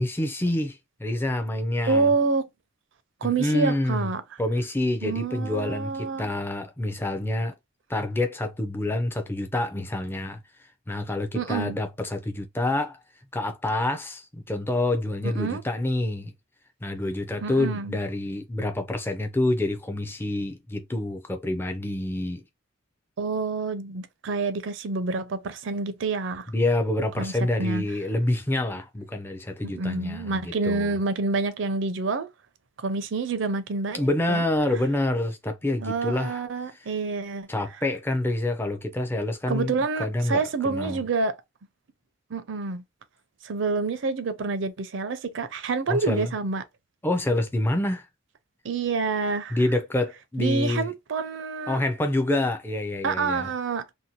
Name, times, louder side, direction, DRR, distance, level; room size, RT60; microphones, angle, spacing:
voice 1, 0.0-2.1 3.2-4.1 4.4-7.6 7.9-10.4 10.9-13.0 13.3-16.3 16.8-22.4 26.5-30.9 33.9-36.4 37.5-39.7 40.0-41.0 45.9-46.3 47.0-48.0 49.5-50.9 51.7-53.5, left 1 dB, 10° left, 0.4 m, -27 dB
voice 2, 1.9-2.5 3.2-4.2 5.0-6.3 11.3-11.7 15.2-15.6 17.4-18.0 23.2-26.5 27.2-27.8 29.6-32.3 32.8-34.4 35.8-37.5 39.5-41.4 42.3-42.8 43.4-46.6 48.6-49.6 50.4-51.8 53.0-53.9, right 4 dB, 60° right, 0.5 m, -28 dB
2.7 x 2.1 x 2.7 m
head